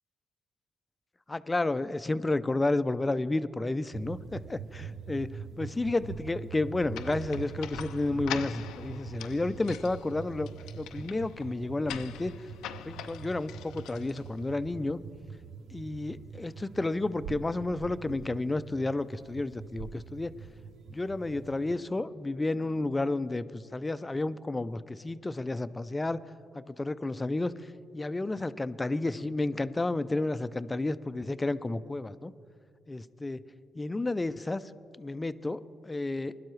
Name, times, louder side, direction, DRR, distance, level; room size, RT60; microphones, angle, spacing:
voice 1, 1.3-5.3 5.6-10.5 10.7-12.3 12.8-15.0 15.7-20.3 20.9-26.2 26.5-27.5 27.9-32.3 32.9-33.4 33.7-34.6 35.0-36.4, left 2 dB, 20° left, 14 dB, 0.4 m, -31 dB
sound 1, 3.9-21.8, right 7 dB, 75° right, 0.5 m, -44 dB
sound 2, 6.9-14.6, left 10 dB, 85° left, 0.4 m, -44 dB
21.0 x 11.5 x 3.2 m, 2.5 s
cardioid pair, 90°, 0 cm